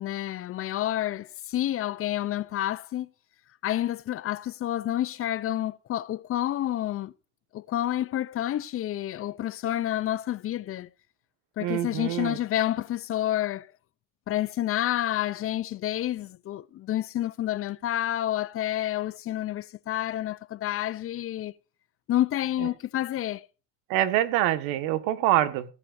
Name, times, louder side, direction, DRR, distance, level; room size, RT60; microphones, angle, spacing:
voice 1, 0.0-3.1 3.6-7.1 7.5-10.9 11.6-13.7 14.3-21.5 22.1-23.5, left 13 dB, 40° left, 0.6 m, -29 dB
voice 2, 11.6-12.4 23.9-25.7, right 13 dB, 90° right, 1.7 m, -25 dB
18.0 x 9.9 x 2.6 m
cardioid pair, 135°, 33 cm